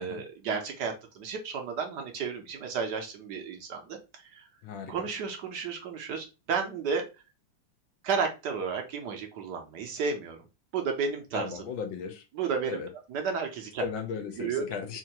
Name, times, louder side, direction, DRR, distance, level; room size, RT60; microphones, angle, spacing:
voice 1, 0.0-4.5 4.9-7.0 8.0-10.4 10.7-11.6 12.3-12.8 13.1-13.8 14.4-14.7, right 5 dB, 65° right, 4 dB, 1.2 m, -32 dB
voice 2, 4.6-5.1 11.3-12.2 12.7-12.9 13.8-15.0, left 6 dB, 80° left, 5 dB, 1.6 m, -36 dB
4.4 x 2.5 x 2.9 m, 0.28 s
omnidirectional pair, 2.1 m